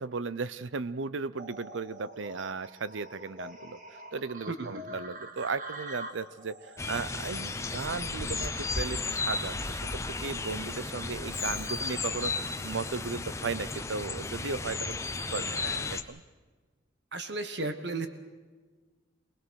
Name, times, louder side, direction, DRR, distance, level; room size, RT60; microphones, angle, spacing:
voice 1, 0.0-15.6 15.9-16.2, right 4 dB, 80° right, 16 dB, 0.7 m, -36 dB
sound 1, 1.3-8.9, right 1 dB, 40° right, 1.7 m, -46 dB
voice 2, 4.5-5.0 15.6-15.9 17.1-18.1, right 2 dB, 60° right, 8 dB, 1.4 m, -35 dB
sound 2, 6.8-16.0, left 3 dB, 15° left, 0.8 m, -34 dB
Shatter, 11.1-12.2, left 10 dB, 65° left, 1.7 m, -50 dB
24.0 x 19.5 x 6.4 m, 1.4 s
head